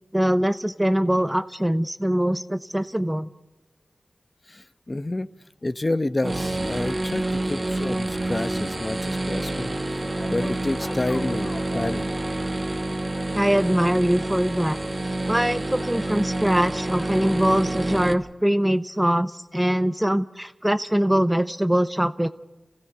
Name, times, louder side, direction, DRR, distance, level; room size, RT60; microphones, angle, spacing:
voice 1, 0.1-3.3 13.3-14.8 15.3-22.3, right 1 dB, 10° right, 11 dB, 0.8 m, -22 dB
voice 2, 4.5-5.3 5.6-9.7 10.3-12.1, left 2 dB, 35° left, 15 dB, 0.9 m, -29 dB
sound 1, 6.2-18.1, right 2 dB, 35° right, 1.5 m, -28 dB
sound 2, 10.0-18.1, left 2 dB, 60° left, 2.1 m, -44 dB
29.0 x 16.0 x 6.8 m, 1.1 s
cardioid pair, 50°, 0 cm